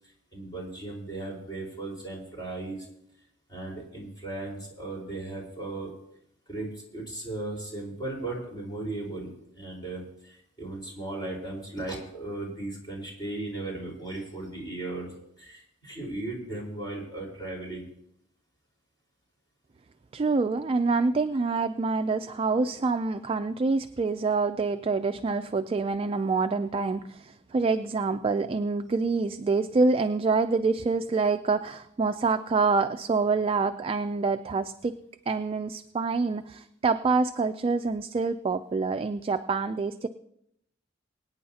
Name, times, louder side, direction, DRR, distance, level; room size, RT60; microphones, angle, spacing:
voice 1, 0.3-2.9 3.5-5.9 6.5-15.1 15.4-17.9, right 2 dB, 20° left, -2 dB, 4.3 m, -36 dB
voice 2, 20.1-35.0 35.3-40.1, right 4 dB, 30° right, 9 dB, 0.3 m, -26 dB
23.5 x 9.4 x 2.8 m, 0.78 s
head